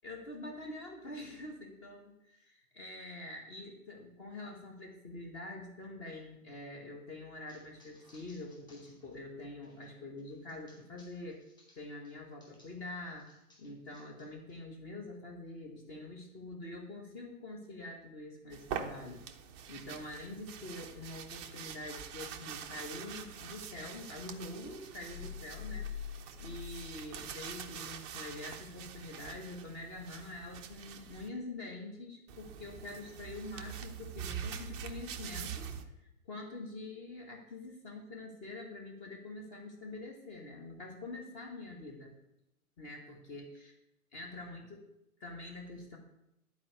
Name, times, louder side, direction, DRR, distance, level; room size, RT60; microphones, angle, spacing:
voice 1, 0.0-11.5 11.8-13.3 13.6-19.2 19.7-35.7 36.0-42.1 42.8-43.7 44.1-44.8 45.2-46.0, left 2 dB, 25° left, 1 dB, 1.8 m, -45 dB
sound 1, 7.5-12.8 13.2-14.6, left 1 dB, 10° left, 2.5 m, -65 dB
sound 2, 18.5-31.3 32.3-35.8, right 8 dB, 20° right, 0.6 m, -45 dB
sound 3, 25.1-27.8, left 9 dB, 85° left, 0.7 m, -44 dB
11.5 x 4.8 x 8.1 m, 0.84 s
figure-of-eight pair, 120°, 45 cm